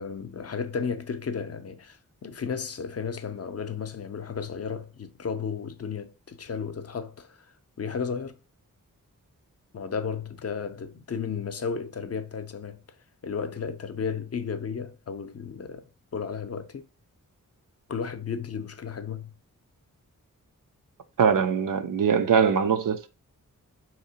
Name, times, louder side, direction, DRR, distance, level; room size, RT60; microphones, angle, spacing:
voice 1, 0.0-8.4 9.7-12.8 13.2-16.9 17.9-19.3, left 6 dB, 45° left, 0.5 m, -34 dB
voice 2, 21.2-23.1, right 6 dB, 65° right, 0.5 m, -22 dB
3.5 x 2.9 x 2.8 m
cardioid pair, 45°, 35 cm